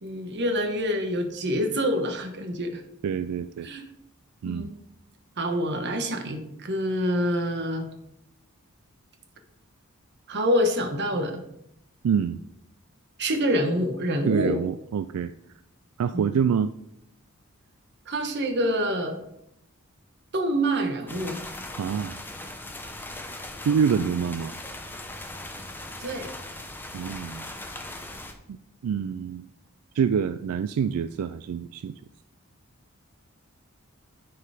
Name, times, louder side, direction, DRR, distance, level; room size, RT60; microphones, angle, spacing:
voice 1, 0.0-2.8 3.6-3.8 4.4-4.7 5.4-7.9 10.3-11.4 13.2-14.6 16.1-16.3 18.1-19.2 20.3-21.4 26.0-26.3, equal, 55° right, 6 dB, 1.2 m, -26 dB
voice 2, 3.0-3.7 4.4-4.7 12.0-12.4 14.3-15.3 16.0-16.7 21.8-22.2 23.6-24.6 26.9-27.5 28.5-28.6 28.8-29.5 29.9-31.9, right 7 dB, 85° right, 12 dB, 0.3 m, -26 dB
sound 1, 21.1-28.3, left 2 dB, 10° left, 0.8 m, -39 dB
9.8 x 4.7 x 4.9 m, 0.79 s
head